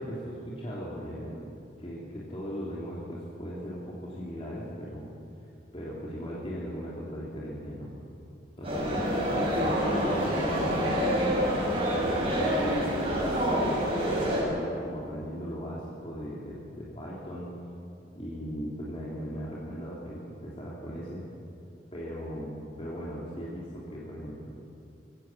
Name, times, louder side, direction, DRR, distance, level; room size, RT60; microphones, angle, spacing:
voice 1, 0.0-1.5 1.8-5.1 5.7-7.9 8.6-13.7 14.2-17.5 18.1-21.3 21.9-24.5, equal, 35° left, -6 dB, 3.2 m, -38 dB
sound 1, 8.6-14.4, equal, 35° right, 6.9 m, -27 dB
23.5 x 16.5 x 7.3 m, 2.7 s
head